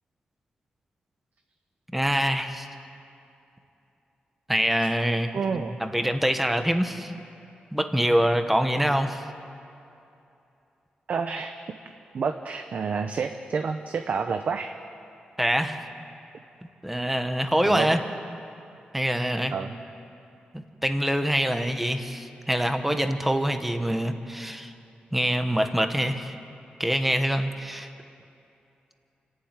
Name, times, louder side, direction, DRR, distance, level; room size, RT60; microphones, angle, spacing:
voice 1, 1.9-2.7 4.5-5.3 5.6-7.1 7.7-9.3 15.4-15.8 16.8-18.0 18.9-19.5 20.5-24.7 25.1-26.3 26.8-27.9, equal, 5° right, 7 dB, 1.2 m, -25 dB
voice 2, 5.3-5.7 11.1-11.6 12.1-14.8 17.6-17.9 19.5-19.8, right 5 dB, 55° right, 6 dB, 0.9 m, -29 dB
29.0 x 12.0 x 9.0 m, 2.7 s
wide cardioid pair, 145°, 3 cm